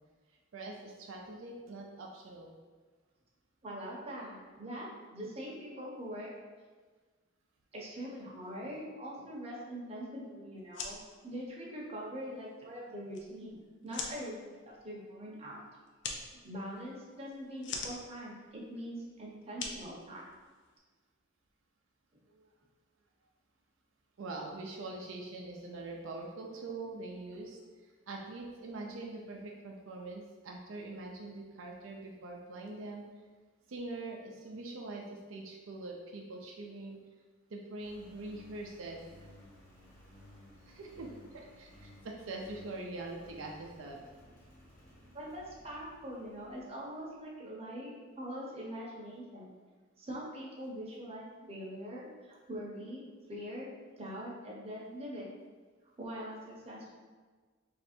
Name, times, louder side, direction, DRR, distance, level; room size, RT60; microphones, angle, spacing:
voice 1, 0.5-2.5 22.3-22.5 24.2-27.6 28.1-33.0 33.7-37.0 37.5-39.0 40.6-44.0, right 2 dB, 80° right, 0 dB, 0.5 m, -43 dB
voice 2, 3.6-6.3 7.7-11.0 11.2-15.6 16.4-20.3 45.1-49.5 50.0-53.0 53.3-53.7 54.0-55.3 56.0-56.9, equal, 30° right, -4 dB, 0.8 m, -43 dB
sound 1, 10.6-20.8, left 4 dB, 60° left, 0.5 m, -46 dB
Engine, 37.8-47.2, left 1 dB, 40° left, 0.9 m, -57 dB
3.2 x 2.6 x 4.2 m, 1.4 s
head